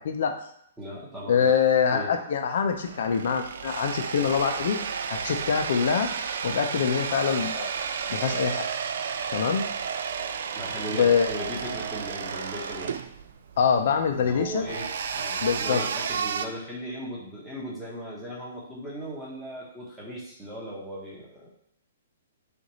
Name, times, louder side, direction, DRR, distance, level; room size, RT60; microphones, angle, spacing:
voice 1, 0.0-0.4 1.3-4.8 5.1-6.1 6.4-7.7 8.1-8.7 9.3-9.6 10.9-11.3 13.6-14.7 15.4-15.8, left 6 dB, 50° left, 5 dB, 0.6 m, -24 dB
voice 2, 0.8-1.5 1.9-2.1 10.5-13.0 14.1-21.5, equal, 5° right, -6 dB, 1.1 m, -37 dB
sound 1, 2.7-16.5, right 6 dB, 55° right, 0.3 m, -32 dB
6.4 x 2.6 x 3.1 m, 0.71 s
hypercardioid pair, 175°, 0 cm